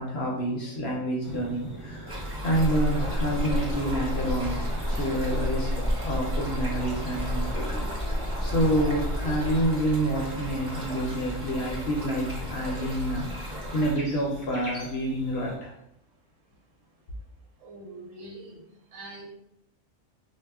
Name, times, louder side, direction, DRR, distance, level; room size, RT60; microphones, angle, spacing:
voice 1, 0.0-4.6 4.9-15.7, right 1 dB, 60° left, -2 dB, 0.7 m, -28 dB
sound 1, 1.2-15.6, equal, 20° right, 0.5 m, -44 dB
Stream, 2.1-13.9, equal, 40° right, 0.9 m, -37 dB
sound 2, 2.5-9.7, equal, 5° left, 1.0 m, -30 dB
voice 2, 17.6-18.6 18.9-19.2, right 2 dB, 70° right, -2 dB, 1.1 m, -43 dB
2.2 x 2.1 x 3.4 m, 0.77 s
omnidirectional pair, 1.4 m